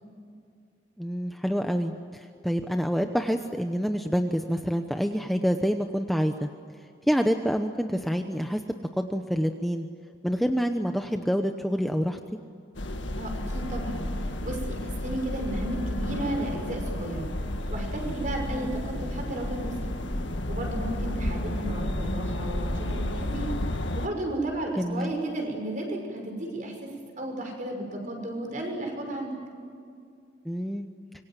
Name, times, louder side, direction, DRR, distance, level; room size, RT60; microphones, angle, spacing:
voice 1, 1.0-6.5 7.1-8.6 9.0-9.9 10.2-12.2 18.5-18.7 24.8-25.1 30.4-30.9, equal, ahead, 5 dB, 0.9 m, -27 dB
sound 1, 12.7-24.1, left 1 dB, 85° left, 1.7 m, -31 dB
voice 2, 13.2-14.0 14.4-17.3 17.7-19.9 20.5-23.5 23.9-26.9 27.2-29.3, right 1 dB, 45° right, 2 dB, 6.2 m, -33 dB
26.0 x 23.5 x 9.2 m, 2.3 s
head